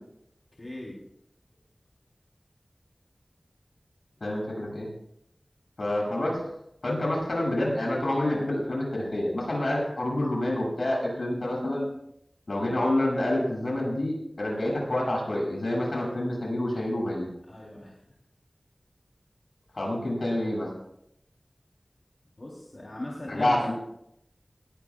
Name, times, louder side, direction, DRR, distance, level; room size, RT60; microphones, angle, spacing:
voice 1, 0.6-1.0 11.6-11.7 17.4-18.0 22.4-23.7, left 1 dB, 55° left, -3 dB, 3.7 m, -39 dB
voice 2, 4.2-4.9 5.8-6.4 6.8-11.9 12.5-17.3 19.7-20.7 23.3-23.7, left 1 dB, 75° left, -2 dB, 7.6 m, -28 dB
21.5 x 18.5 x 2.5 m, 0.77 s
wide cardioid pair, 60°, 0 cm